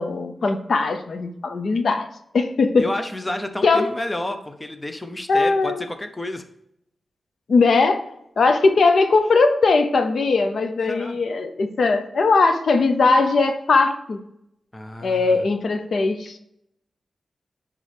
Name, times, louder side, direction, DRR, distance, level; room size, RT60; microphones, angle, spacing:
voice 1, 0.0-2.1 2.3-2.9 3.6-3.9 5.3-5.8 7.5-14.2 15.0-16.4, left 3 dB, 70° left, 8 dB, 0.6 m, -19 dB
voice 2, 2.8-6.4 10.9-11.2 14.7-15.4, left 1 dB, 20° left, 7 dB, 0.7 m, -30 dB
10.5 x 3.7 x 3.4 m, 0.78 s
wide cardioid pair, 90°, 0 cm